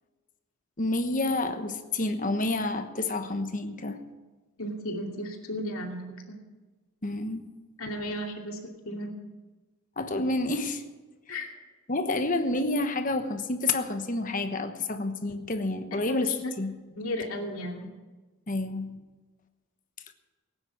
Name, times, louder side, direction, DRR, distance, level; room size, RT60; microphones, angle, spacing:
voice 1, 0.8-4.0 7.0-7.5 10.0-10.8 11.3-11.4 11.9-16.7 18.5-19.0, left 2 dB, 35° left, 7 dB, 1.1 m, -29 dB
voice 2, 4.6-6.4 7.8-8.6 8.8-9.1 11.3-11.5 15.9-16.5 16.9-17.9, equal, 70° left, 1 dB, 2.6 m, -34 dB
18.0 x 9.7 x 6.2 m, 1.3 s
head